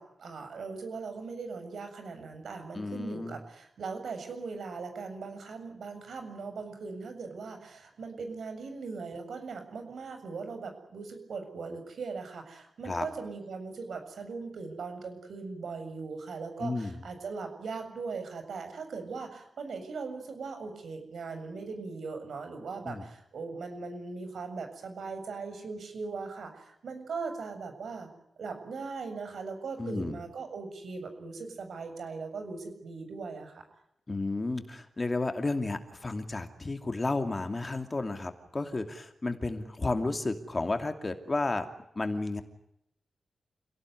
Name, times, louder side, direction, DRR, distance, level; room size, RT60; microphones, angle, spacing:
voice 1, 0.0-28.1 28.4-33.6, right 4 dB, 75° right, 7 dB, 7.3 m, -39 dB
voice 2, 2.7-3.4 12.8-13.1 16.6-17.0 22.8-23.0 29.8-30.2 34.1-41.7 42.0-42.4, left 2 dB, 25° left, 6 dB, 2.6 m, -32 dB
28.5 x 18.0 x 9.6 m, 0.79 s
wide cardioid pair, 150°, 0 cm